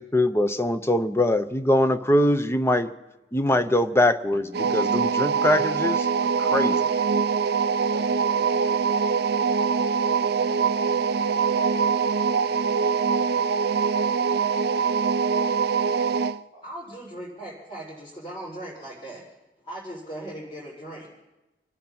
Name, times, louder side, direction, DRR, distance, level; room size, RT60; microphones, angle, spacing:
voice 1, 0.0-2.9 3.3-6.8, left 1 dB, 15° left, 10 dB, 0.7 m, -23 dB
sound 1, 4.5-16.4, right 5 dB, 60° right, 0.5 m, -23 dB
voice 2, 6.0-6.6 6.8-7.0 7.8-10.8, right 1 dB, 50° left, -3 dB, 7.1 m, -49 dB
voice 3, 16.6-19.3 19.6-21.1, right 1 dB, 35° left, -11 dB, 5.7 m, -38 dB
29.5 x 10.0 x 4.4 m, 0.99 s
head